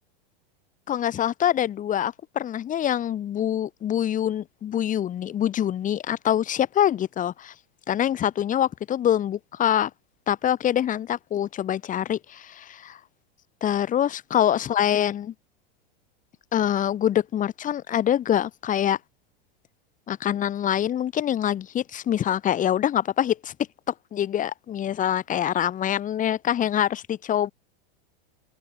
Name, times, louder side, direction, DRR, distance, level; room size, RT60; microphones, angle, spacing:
voice 1, 0.9-7.5 7.9-9.9 10.3-13.0 13.6-15.3 16.5-19.0 20.1-23.5 24.1-27.5, left 10 dB, 25° left, 6.8 m, -25 dB
supercardioid pair, 150°, 31 cm